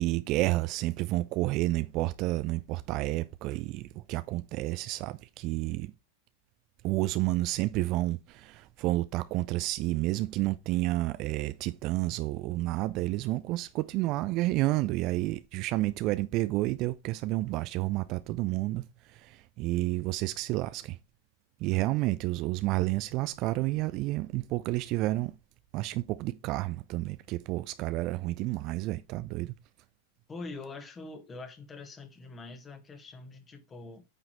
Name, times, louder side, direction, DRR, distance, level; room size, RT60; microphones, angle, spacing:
voice 1, 0.0-5.9 6.8-21.0 21.6-25.3 25.7-29.5, right 18 dB, 40° right, 0.5 m, -30 dB
voice 2, 30.3-34.0, left 3 dB, 20° left, 1.8 m, -44 dB
9.1 x 5.9 x 3.2 m
figure-of-eight pair, 90°, 0 cm